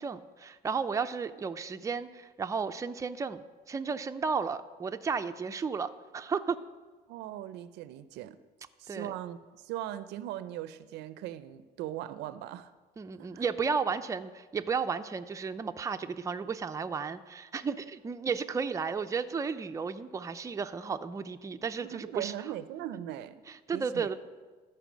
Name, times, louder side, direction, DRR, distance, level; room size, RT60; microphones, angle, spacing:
voice 1, 0.0-3.4 3.7-6.6 8.9-9.1 13.0-22.3 23.5-24.2, right 5 dB, 20° right, 8 dB, 0.4 m, -33 dB
voice 2, 7.1-8.4 8.8-12.7 13.2-13.4 21.8-23.4 23.7-24.2, right 12 dB, 85° right, 14 dB, 0.5 m, -39 dB
13.5 x 4.6 x 6.2 m, 1.3 s
cardioid pair, 110°, 17 cm